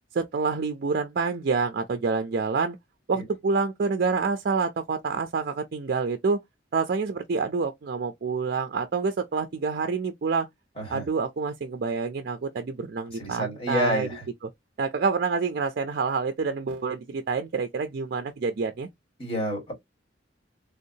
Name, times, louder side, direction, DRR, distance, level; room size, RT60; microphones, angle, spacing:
voice 1, 0.1-2.8 3.1-6.4 6.7-10.5 10.9-14.1 14.8-18.9, right 4 dB, 55° right, 0.4 m, -27 dB
voice 2, 10.8-11.1 13.1-14.2 19.2-19.7, equal, 30° left, 2.0 m, -29 dB
3.4 x 2.7 x 2.7 m
head